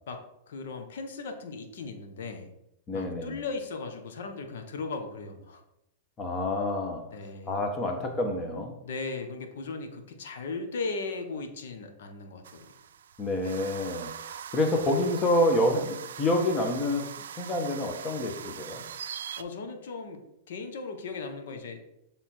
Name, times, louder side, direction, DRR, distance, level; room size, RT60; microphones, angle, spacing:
voice 1, 0.1-2.5 2.9-5.6 7.1-7.6 8.8-12.7 13.4-13.6 14.7-14.8 19.4-21.8, left 4 dB, 70° left, 1.2 m, -37 dB
voice 2, 2.9-3.4 6.2-7.1 7.5-8.8 13.2-18.9, left 1 dB, 25° left, 1.3 m, -28 dB
sound 1, 12.4-19.4, right 8 dB, 75° right, 0.4 m, -42 dB
7.2 x 3.6 x 4.5 m
hypercardioid pair, 110°, 0 cm